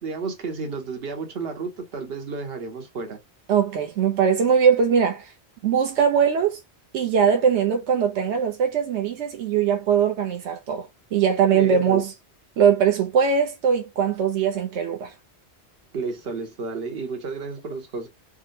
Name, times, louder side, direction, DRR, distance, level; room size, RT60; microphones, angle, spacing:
voice 1, 0.0-3.2 11.5-12.0 15.9-18.1, right 4 dB, 65° right, 1.1 m, -31 dB
voice 2, 3.5-5.3 5.6-6.6 6.9-12.1 12.6-15.1, right 7 dB, 85° right, 0.9 m, -21 dB
3.8 x 2.0 x 2.6 m
omnidirectional pair, 1.1 m